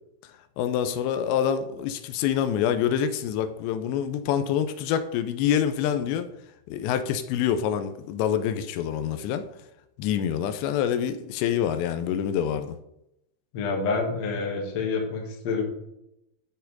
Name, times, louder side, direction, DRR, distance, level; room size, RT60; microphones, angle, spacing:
voice 1, 0.6-6.3 6.7-9.4 10.0-12.8, left 9 dB, 85° left, 9 dB, 2.8 m, -26 dB
voice 2, 13.5-15.6, left 4 dB, 60° left, -1 dB, 1.8 m, -28 dB
12.5 x 4.3 x 4.0 m, 0.83 s
omnidirectional pair, 5.0 m